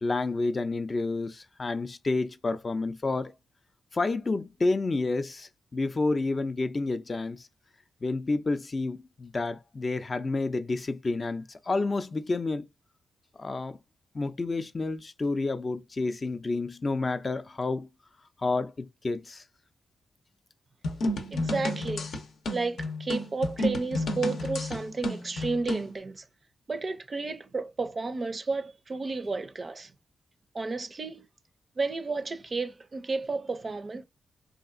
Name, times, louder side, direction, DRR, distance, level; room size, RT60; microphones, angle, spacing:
voice 1, 0.0-3.3 3.9-7.4 8.0-12.7 13.4-13.8 14.1-17.9 18.4-19.4, left 3 dB, 40° left, 0.4 m, -29 dB
sound 1, 20.8-25.9, left 1 dB, 80° left, 0.6 m, -31 dB
voice 2, 21.3-22.1 22.5-26.2 26.7-29.9 30.5-31.3 31.8-34.0, right 3 dB, 40° right, 0.4 m, -32 dB
2.7 x 2.4 x 2.5 m
cardioid pair, 65°, 0 cm